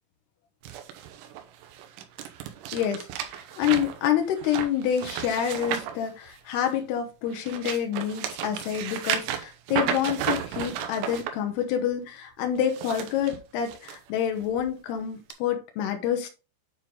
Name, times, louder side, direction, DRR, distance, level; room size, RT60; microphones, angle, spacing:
sound 1, 0.6-6.8 7.2-11.3 12.6-14.0 14.4-14.7 15.3-15.4, right 9 dB, 90° right, 3.8 m, -33 dB
voice 1, 2.7-16.3, left 9 dB, 90° left, 2.3 m, -28 dB
9.2 x 4.6 x 3.8 m
omnidirectional pair, 5.9 m